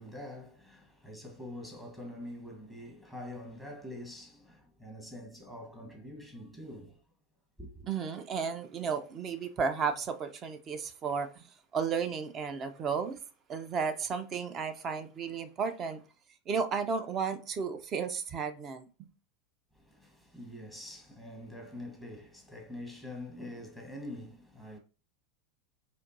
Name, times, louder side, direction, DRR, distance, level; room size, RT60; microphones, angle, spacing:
voice 1, 0.0-7.0 7.6-7.9 19.7-24.8, left 1 dB, 10° right, 1.1 m, -45 dB
voice 2, 7.9-11.5 11.7-13.2 13.5-16.0 16.5-19.1, right 6 dB, 35° right, 0.6 m, -33 dB
4.3 x 2.6 x 2.6 m
hypercardioid pair, 95°, 0 cm